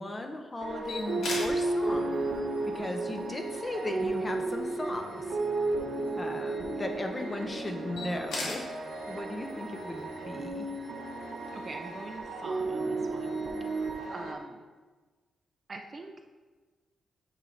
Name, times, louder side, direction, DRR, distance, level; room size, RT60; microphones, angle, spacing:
voice 1, 0.0-2.2 2.7-5.4 6.2-8.6 9.0-10.7, left 1 dB, 25° left, 4 dB, 0.6 m, -37 dB
sound 1, 0.6-14.3, right 2 dB, 70° right, 1.0 m, -33 dB
sound 2, 0.8-14.0, left 2 dB, 90° left, 1.5 m, -45 dB
voice 2, 11.5-13.8 14.1-14.6 15.7-16.1, right 3 dB, 35° right, 4 dB, 0.4 m, -44 dB
8.9 x 3.2 x 3.9 m, 1.3 s
cardioid pair, 120°, 0 cm